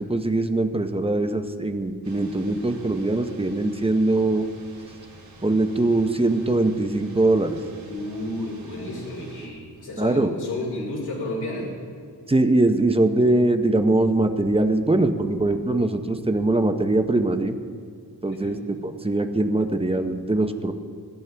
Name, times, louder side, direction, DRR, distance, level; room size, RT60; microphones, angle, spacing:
voice 1, 0.0-4.5 5.4-7.6 10.0-10.3 12.3-17.6 18.2-20.7, right 2 dB, 15° right, 6 dB, 0.6 m, -22 dB
sound 1, 2.0-9.5, right 2 dB, 60° right, 3.1 m, -47 dB
voice 2, 7.9-11.7 18.3-18.6, left 1 dB, 75° left, -3 dB, 2.8 m, -32 dB
22.5 x 10.5 x 3.4 m, 2.1 s
wide cardioid pair, 150°, 39 cm